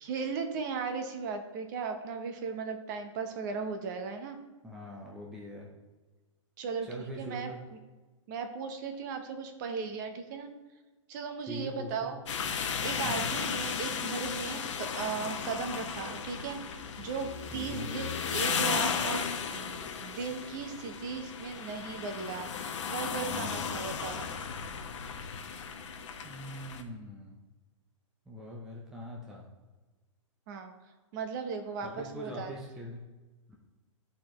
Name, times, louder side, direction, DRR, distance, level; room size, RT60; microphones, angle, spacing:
voice 1, 0.0-4.4 6.6-7.5 8.3-10.5 11.1-12.2 12.8-19.2 19.5-22.5 22.9-24.3 30.5-30.7 31.1-32.5, right 5 dB, 35° right, 6 dB, 0.9 m, -37 dB
voice 2, 4.6-5.7 6.8-7.6 11.5-12.1 13.0-13.3 17.5-17.9 23.3-23.7 26.2-27.4 28.3-29.4 31.8-33.0 33.5-33.6, equal, 5° right, -2 dB, 0.5 m, -42 dB
sound 1, 12.3-26.8, left 6 dB, 65° left, 0.9 m, -35 dB
11.5 x 4.3 x 3.1 m, 1.2 s
hypercardioid pair, 155°, 17 cm